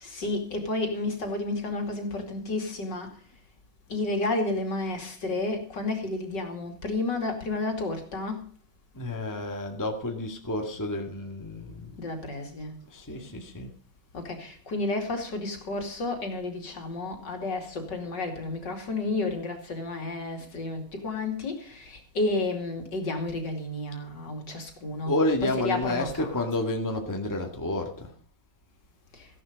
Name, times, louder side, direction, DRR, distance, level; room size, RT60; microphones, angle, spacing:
voice 1, 0.0-3.1 3.9-8.4 12.0-12.7 14.1-25.1 25.4-26.3, left 2 dB, 55° left, 3.3 m, -31 dB
voice 2, 8.9-12.0 12.9-13.7 25.0-28.1, left 1 dB, 10° left, 1.8 m, -30 dB
15.0 x 11.0 x 5.3 m
omnidirectional pair, 2.3 m